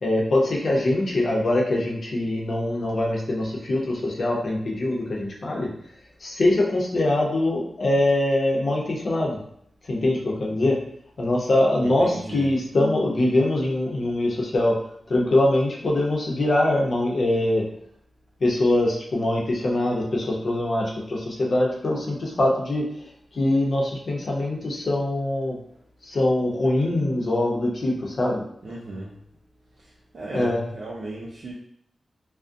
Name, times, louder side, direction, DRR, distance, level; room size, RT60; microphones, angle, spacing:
voice 1, 0.0-5.7 6.2-9.4 9.8-10.8 11.2-14.8 15.1-17.6 18.4-25.6 26.0-28.4 30.3-30.6, left 1 dB, 65° left, -2 dB, 0.6 m, -23 dB
voice 2, 11.8-12.5 28.6-29.1 30.1-31.5, right 2 dB, 65° right, -5 dB, 0.4 m, -35 dB
2.4 x 2.0 x 2.5 m, 0.67 s
cardioid pair, 60°, 0 cm